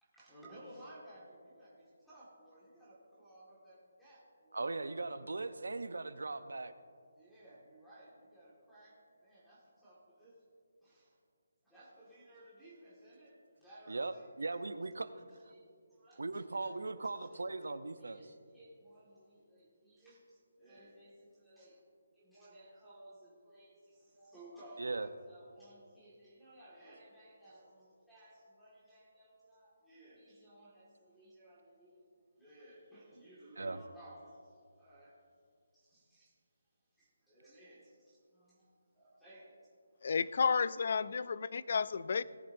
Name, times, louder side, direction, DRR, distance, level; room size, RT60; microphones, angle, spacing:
voice 1, 0.0-4.6 7.1-10.4 10.8-11.2 11.7-14.5 15.4-15.6 15.9-17.6 18.0-21.7 22.1-35.2 35.7-36.4 37.0-39.6, right 1 dB, ahead, -10 dB, 1.8 m, -58 dB
voice 2, 4.5-6.7 13.9-14.1 14.4-15.1 16.2-18.2 24.8-25.1 33.6-33.8, right 3 dB, 85° right, 12 dB, 0.6 m, -38 dB
voice 3, 40.0-42.2, left 5 dB, 45° left, 18 dB, 0.3 m, -32 dB
18.0 x 10.0 x 2.6 m, 2.3 s
hypercardioid pair, 170°, 0 cm